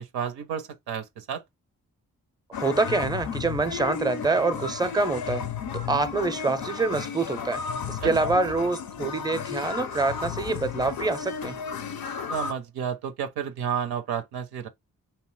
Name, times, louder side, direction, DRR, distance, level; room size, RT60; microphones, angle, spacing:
voice 1, 0.0-1.4 8.0-8.1 12.3-14.7, right 8 dB, 90° right, 0.5 m, -31 dB
sound 1, 2.5-12.5, left 7 dB, 70° left, 0.5 m, -33 dB
voice 2, 2.5-5.4 5.7-7.6 7.9-11.6, right 3 dB, 10° right, 0.5 m, -26 dB
2.8 x 2.0 x 3.1 m
supercardioid pair, 40°, 37 cm